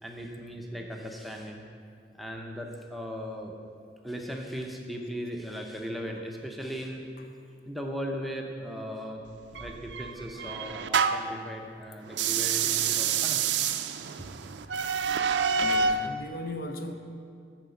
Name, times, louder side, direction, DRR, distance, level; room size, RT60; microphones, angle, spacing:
voice 1, 0.0-1.6 2.1-3.6 4.0-7.1 7.7-9.3 9.6-13.4, equal, ahead, 0 dB, 0.6 m, -37 dB
sound 1, 9.6-11.4 12.1-16.1, right 6 dB, 80° right, 0.4 m, -27 dB
voice 2, 15.6-16.9, left 1 dB, 55° left, 5 dB, 0.6 m, -37 dB
10.0 x 5.0 x 6.8 m, 2.3 s
head